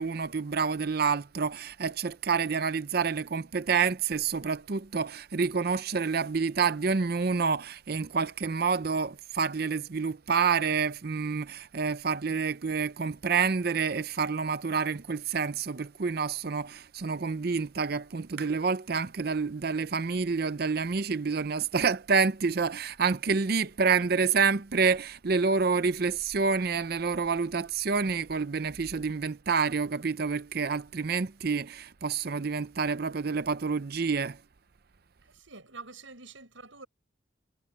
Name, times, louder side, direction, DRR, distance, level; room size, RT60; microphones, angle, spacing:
voice 1, 0.0-34.4, right 5 dB, 50° right, 0.6 m, -28 dB
voice 2, 35.3-36.9, right 3 dB, 75° right, 7.6 m, -47 dB
head